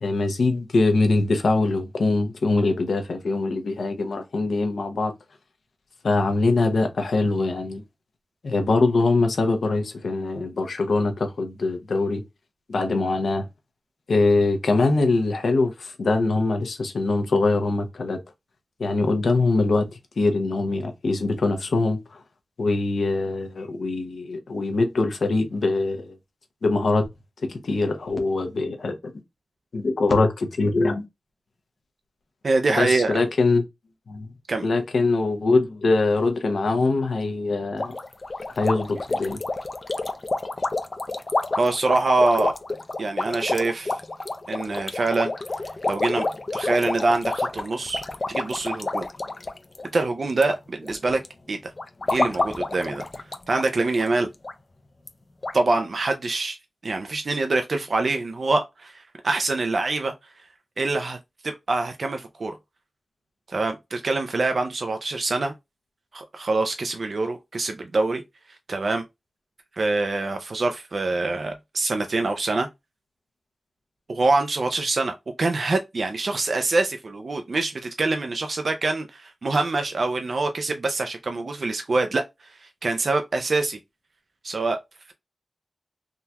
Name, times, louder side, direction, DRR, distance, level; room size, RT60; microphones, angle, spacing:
voice 1, 0.0-5.1 6.0-7.8 8.4-12.2 12.7-13.5 14.1-18.2 18.8-19.9 20.2-22.2 22.6-26.2 26.6-27.1 27.5-29.1 29.7-31.0 32.8-33.6 34.1-34.3 34.6-37.9 38.6-39.4, left 3 dB, 85° left, 0.7 m, -23 dB
voice 2, 32.4-33.2 34.5-34.7 41.6-42.5 43.0-44.0 44.5-45.3 45.8-46.3 46.5-48.0 48.3-49.1 49.9-51.2 51.5-51.7 52.1-53.0 53.5-54.3 55.5-56.6 56.8-60.1 60.8-61.2 61.4-62.6 63.5-65.5 66.1-68.2 68.7-69.0 69.8-72.7 74.1-82.2 82.5-83.8 84.4-84.8, right 3 dB, 65° right, 0.4 m, -25 dB
sound 1, 37.8-50.6 50.8-51.3 51.8-53.7 54.0-54.1 54.4-54.5 55.1-55.2 55.4-55.6, left 2 dB, 45° left, 0.5 m, -29 dB
3.7 x 2.8 x 2.2 m
wide cardioid pair, 65°, 0 cm